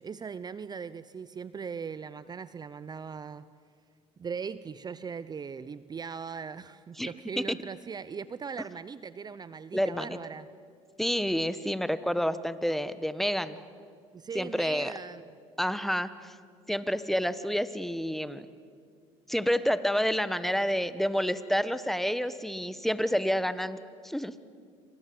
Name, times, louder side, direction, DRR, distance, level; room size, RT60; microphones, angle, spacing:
voice 1, 0.0-3.5 4.2-10.5 14.1-15.3, right 6 dB, 30° right, 15 dB, 0.7 m, -39 dB
voice 2, 9.7-10.2 11.0-13.6 14.3-14.9 15.6-16.3 16.7-18.5 19.3-23.8 24.0-24.3, equal, ahead, 13 dB, 1.4 m, -29 dB
28.5 x 25.5 x 8.0 m, 2.2 s
supercardioid pair, 85°, 14 cm